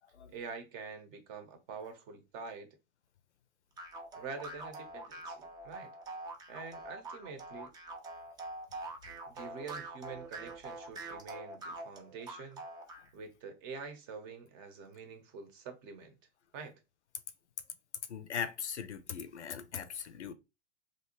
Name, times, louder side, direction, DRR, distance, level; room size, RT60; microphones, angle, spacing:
voice 1, 0.3-2.7 4.1-5.9 6.5-7.7 9.3-12.6 13.1-16.2 16.5-16.8, right 5 dB, 40° right, 0.7 m, -46 dB
sound 1, 3.8-13.1, right 2 dB, 10° right, 0.3 m, -45 dB
voice 2, 18.1-20.3, left 8 dB, 80° left, 0.5 m, -39 dB
2.6 x 2.2 x 2.9 m
figure-of-eight pair, 95°, 34 cm